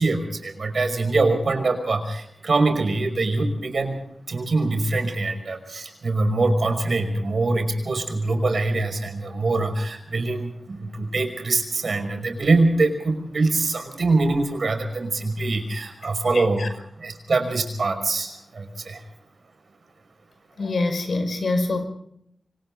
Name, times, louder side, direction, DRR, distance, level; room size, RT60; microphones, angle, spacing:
voice 1, 0.0-4.0 4.3-19.0, right 3 dB, 70° right, 7 dB, 5.5 m, -24 dB
voice 2, 16.3-16.7 20.6-21.8, left 2 dB, 75° left, 8 dB, 5.3 m, -25 dB
26.5 x 25.5 x 3.9 m, 0.72 s
wide cardioid pair, 90°, 0 cm